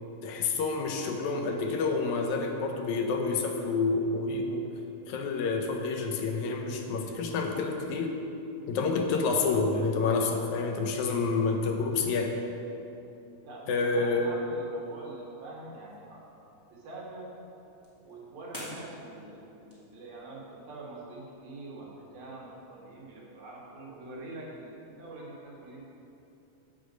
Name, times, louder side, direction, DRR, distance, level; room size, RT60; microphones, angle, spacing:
voice 1, 0.2-4.7 5.1-8.2 8.7-12.4 13.7-14.4, left 4 dB, 80° left, 3 dB, 2.0 m, -28 dB
voice 2, 13.4-16.3 16.7-17.3 18.0-25.9, right 2 dB, 70° right, -4 dB, 2.8 m, -45 dB
sound 1, 15.6-20.7, equal, 5° left, 1.9 m, -50 dB
8.3 x 7.8 x 5.1 m, 2.9 s
omnidirectional pair, 3.5 m